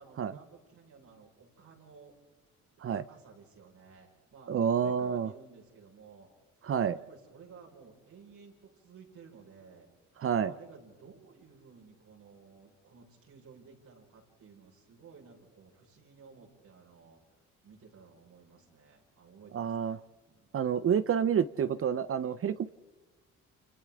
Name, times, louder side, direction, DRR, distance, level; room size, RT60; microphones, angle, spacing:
voice 1, 0.0-2.1 2.9-6.3 6.9-9.9 10.4-20.0 20.3-20.5, right 5 dB, 70° right, -3 dB, 5.3 m, -55 dB
voice 2, 4.5-5.3 6.6-7.0 10.2-10.5 19.5-20.0 20.5-22.7, right 8 dB, 45° right, 14 dB, 0.7 m, -28 dB
30.0 x 27.0 x 3.7 m, 1.2 s
cardioid pair, 90°, 30 cm